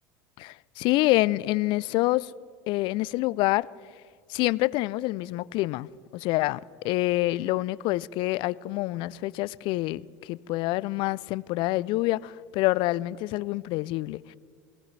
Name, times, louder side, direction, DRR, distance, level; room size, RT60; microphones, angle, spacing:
voice 1, 0.4-2.3 2.7-3.7 4.3-14.2, left 19 dB, 60° left, 0.4 m, -27 dB
23.0 x 18.0 x 3.3 m
hypercardioid pair, 90°, 10 cm